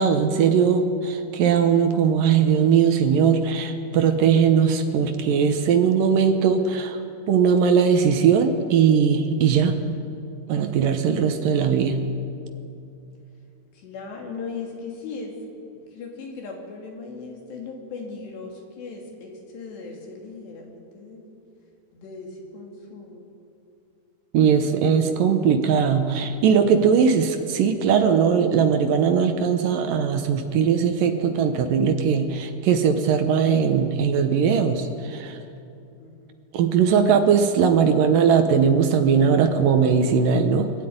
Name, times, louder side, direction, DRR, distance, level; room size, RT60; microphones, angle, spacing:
voice 1, 0.0-7.0 7.3-9.8 10.5-12.0 24.3-35.4 36.5-40.7, right 6 dB, 70° right, 7 dB, 2.3 m, -19 dB
voice 2, 13.7-15.4 15.9-21.2 21.9-23.3 36.0-36.4, left 4 dB, 80° left, 0 dB, 5.0 m, -38 dB
23.0 x 12.5 x 9.5 m, 2.7 s
omnidirectional pair, 4.8 m